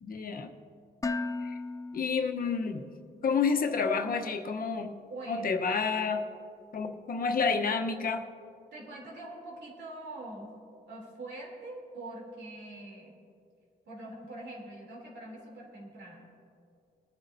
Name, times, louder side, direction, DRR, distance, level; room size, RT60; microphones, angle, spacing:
voice 1, 0.0-0.5 1.4-1.6 1.9-2.9 3.2-4.9 5.3-6.2 6.7-8.3, left 5 dB, 55° left, 4 dB, 1.0 m, -29 dB
Dishes pots and pans, 1.0-3.1, left 3 dB, 20° left, 0.4 m, -36 dB
voice 2, 5.1-5.6 7.4-7.5 8.7-10.5 10.9-13.2 13.9-16.3, right 1 dB, 85° right, -2 dB, 3.1 m, -44 dB
21.5 x 9.6 x 2.7 m, 2.4 s
cardioid pair, 110°, 18 cm